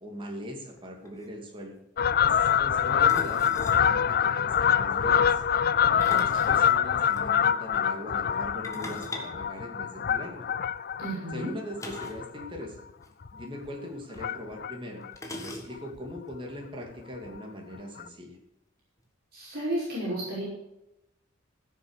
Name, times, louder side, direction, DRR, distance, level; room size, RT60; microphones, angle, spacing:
voice 1, 0.0-1.7 2.2-5.4 6.1-10.4 11.3-12.8 13.3-18.4, equal, 25° right, 0 dB, 2.7 m, -41 dB
sound 1, 0.8-0.9 1.0-1.3 3.1-3.9 5.8-7.2 8.6-10.3 11.8-12.3 12.5-12.6 13.0-13.1 14.1-14.2 15.2-16.0, left 1 dB, 15° left, 1.5 m, -40 dB
Fowl, 2.0-12.8 13.2-13.4 14.2-14.7 15.0-15.1 15.4-15.5 15.8-15.9 16.2-16.3 17.3-17.4 18.0-18.1, left 8 dB, 45° left, 0.4 m, -25 dB
voice 2, 5.9-6.5 11.0-11.5 19.3-20.4, right 1 dB, 45° right, -6 dB, 5.3 m, -33 dB
16.0 x 6.9 x 6.5 m, 0.88 s
head